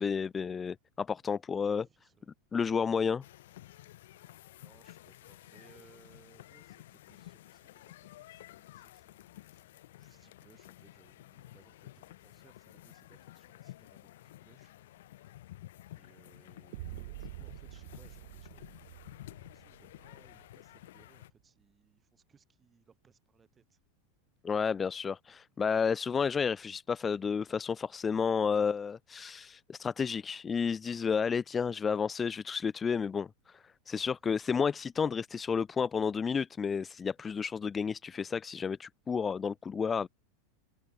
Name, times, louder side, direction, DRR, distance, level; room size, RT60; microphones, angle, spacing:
voice 1, 0.0-1.9 2.5-3.2 24.4-40.1, left 6 dB, 20° left, 0.4 m, -31 dB
voice 2, 1.6-2.3 4.2-9.6 10.0-14.7 16.0-23.8 34.7-34.9 39.7-39.9, right 6 dB, 15° right, 7.2 m, -65 dB
sound 1, 3.2-21.3, left 15 dB, 75° left, 3.1 m, -53 dB
sound 2, 16.7-20.7, right 19 dB, 65° right, 3.1 m, -47 dB
open air
supercardioid pair, 140°, 0 cm